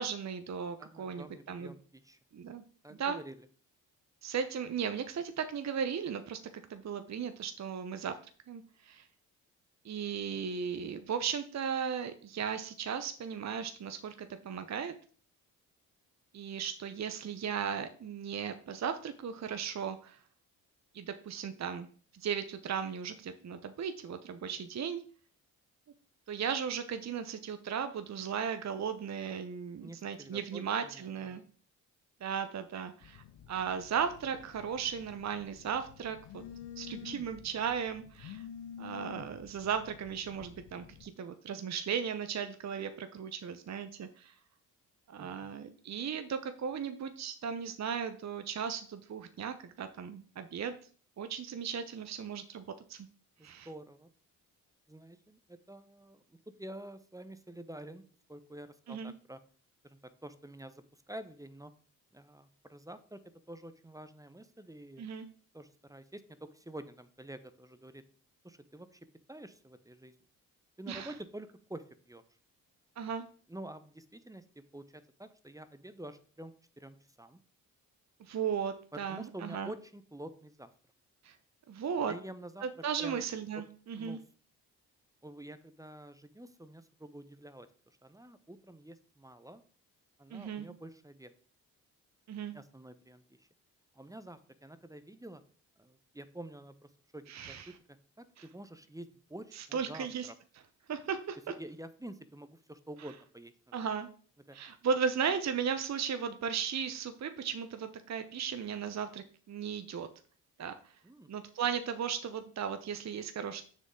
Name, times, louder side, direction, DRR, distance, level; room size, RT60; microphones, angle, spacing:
voice 1, 0.0-1.7 2.3-2.6 3.0-3.2 4.2-6.4 6.7-8.2 8.5-9.1 9.8-14.9 16.3-20.2 20.9-21.9 22.1-25.0 26.3-31.4 32.2-36.4 36.8-38.4 38.8-44.3 45.1-50.8 51.2-52.6 52.9-53.1 53.4-53.7 58.9-59.1 65.0-65.2 70.9-71.1 73.0-73.2 78.2-79.7 81.2-81.3 81.7-82.1 82.6-84.2 90.3-90.7 92.3-92.5 97.3-97.7 98.4-98.5 99.5-100.3 100.9-101.5 103.7-104.1 104.5-110.1 110.6-110.7 111.3-113.6, right 7 dB, 40° right, 9 dB, 0.9 m, -36 dB
voice 2, 0.8-2.2 2.8-3.3 10.3-10.4 29.8-31.5 45.2-45.5 53.4-54.1 54.9-56.2 56.6-58.0 58.3-59.4 59.8-61.7 62.1-63.2 63.5-65.0 65.5-68.0 68.4-70.1 70.8-72.2 73.5-74.4 74.7-77.4 79.1-80.7 82.1-82.6 83.0-83.3 84.0-84.2 85.2-89.6 90.2-91.3 92.5-93.5 93.9-95.4 95.8-100.3 101.6-103.9 104.5-104.6 111.0-111.3, right 1 dB, 10° right, 12 dB, 0.9 m, -48 dB
Telephone, 33.0-41.1, left 9 dB, 60° left, 0.9 m, -50 dB
7.4 x 6.7 x 3.8 m, 0.43 s
hypercardioid pair, 45°, 43 cm